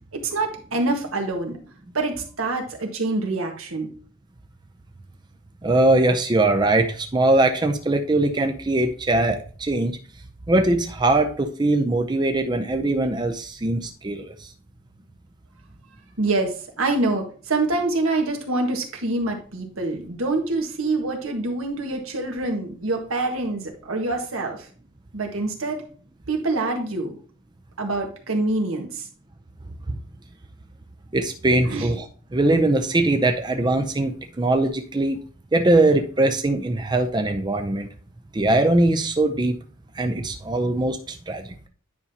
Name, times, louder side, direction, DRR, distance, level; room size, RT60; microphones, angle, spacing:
voice 1, 0.1-1.6 1.9-3.9 16.2-24.6 25.1-25.8 26.3-27.2 27.8-29.0 31.6-31.9, right 2 dB, 85° right, 2 dB, 1.6 m, -26 dB
voice 2, 5.6-10.0 10.5-14.5 29.9-30.0 31.1-32.1 32.3-35.2 35.5-37.9 38.3-39.6 39.9-41.5, right 2 dB, 20° right, 6 dB, 0.5 m, -21 dB
9.7 x 5.4 x 2.8 m, 0.41 s
head